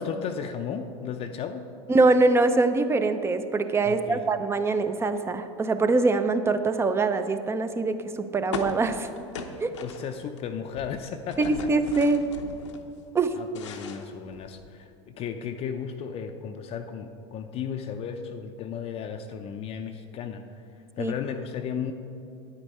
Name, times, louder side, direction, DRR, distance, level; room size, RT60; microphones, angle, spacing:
voice 1, 0.0-1.6 3.8-4.2 9.8-11.5 13.3-20.6 21.0-21.9, left 7 dB, 40° left, 5 dB, 0.5 m, -34 dB
voice 2, 1.9-9.1 9.6-9.7 11.4-12.2 13.1-13.4 21.0-21.1, right 3 dB, 15° right, 10 dB, 0.6 m, -23 dB
sound 1, 8.5-10.4 10.7-12.8 13.2-14.8, left 5 dB, 90° left, 0.8 m, -38 dB
9.4 x 9.0 x 4.3 m, 2.6 s
hypercardioid pair, 100°, 15 cm